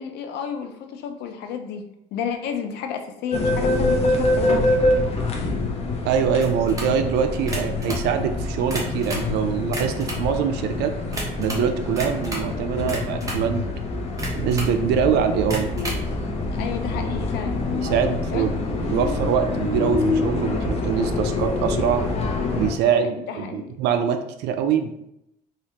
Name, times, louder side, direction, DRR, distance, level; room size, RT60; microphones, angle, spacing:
voice 1, 0.0-1.8 2.1-4.8 16.5-17.6 18.3-18.5 22.8-23.7, left 7 dB, 75° left, 6 dB, 0.5 m, -31 dB
sound 1, 3.3-22.7, left 2 dB, 35° left, 0.7 m, -25 dB
voice 2, 6.0-10.9 11.4-13.7 14.4-15.7 17.8-22.0 22.6-25.1, right 7 dB, 80° right, 7 dB, 0.4 m, -24 dB
sound 2, 6.4-7.0 7.4-8.1 8.5-9.3 9.6-10.3 11.1-11.7 11.9-12.5 12.9-13.5 14.2-14.8 15.4-16.1, right 1 dB, 20° right, 0.9 m, -32 dB
3.2 x 2.3 x 2.8 m, 0.80 s
cardioid pair, 110°, 17 cm